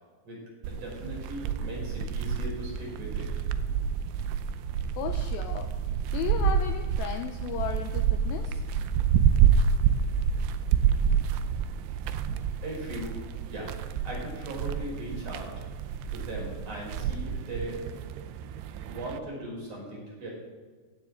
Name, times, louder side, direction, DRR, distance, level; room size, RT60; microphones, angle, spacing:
sound 1, 0.6-19.2, right 7 dB, 85° right, 2.6 m, -28 dB
voice 1, 0.7-3.3 12.6-13.7 14.0-15.7 16.1-17.8 18.8-20.3, right 1 dB, 45° right, -3 dB, 6.3 m, -38 dB
voice 2, 5.0-5.8 6.1-8.6, left 9 dB, 80° left, 6 dB, 2.2 m, -35 dB
17.5 x 16.0 x 3.8 m, 1.5 s
omnidirectional pair, 5.0 m